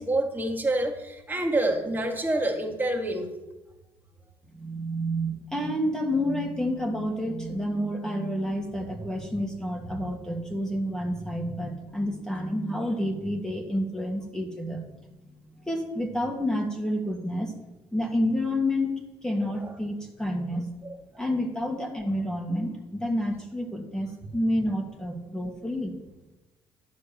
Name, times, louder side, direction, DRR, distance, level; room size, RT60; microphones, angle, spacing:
voice 1, 0.0-3.3 19.5-19.7 20.8-21.2, right 1 dB, 15° right, 1 dB, 2.0 m, -27 dB
voice 2, 4.5-14.8 15.3-15.4 15.6-17.5 17.9-20.6 21.2-26.0, equal, 5° left, 2 dB, 1.9 m, -29 dB
10.5 x 4.2 x 6.7 m, 1.1 s
supercardioid pair, 65°, 11 cm